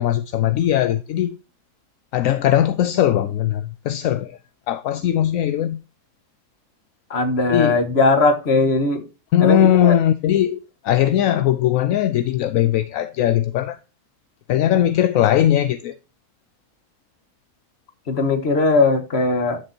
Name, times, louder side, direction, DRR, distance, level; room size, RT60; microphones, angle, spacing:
voice 1, 0.0-1.4 2.1-4.4 4.7-5.8 7.5-7.8 9.3-13.8 14.5-15.9, left 11 dB, 65° left, 0.9 m, -19 dB
voice 2, 7.1-9.0 9.4-9.9 18.1-19.6, left 3 dB, 40° left, 1.5 m, -19 dB
11.5 x 6.4 x 2.8 m
omnidirectional pair, 1.7 m